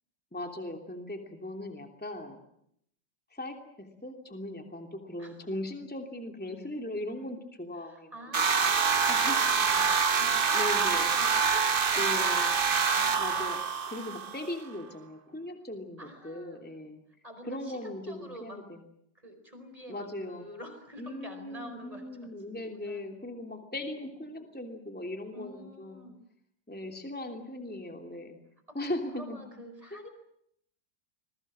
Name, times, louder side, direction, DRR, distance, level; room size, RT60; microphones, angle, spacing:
voice 1, 0.3-2.4 3.3-8.5 9.1-9.4 10.5-11.1 12.0-12.5 13.2-13.6 13.9-17.0 17.5-18.8 19.9-20.4 21.0-26.0 26.7-28.4 28.7-29.4 29.9-30.0, left 1 dB, 5° left, 4 dB, 2.9 m, -39 dB
voice 2, 7.7-13.3 16.0-16.6 17.2-18.6 19.1-23.0 25.3-26.2 28.7-30.1, equal, 20° right, 7 dB, 4.8 m, -48 dB
sound 1, 8.3-14.5, right 5 dB, 35° right, 1.1 m, -26 dB
29.0 x 21.5 x 7.5 m, 0.72 s
omnidirectional pair, 2.0 m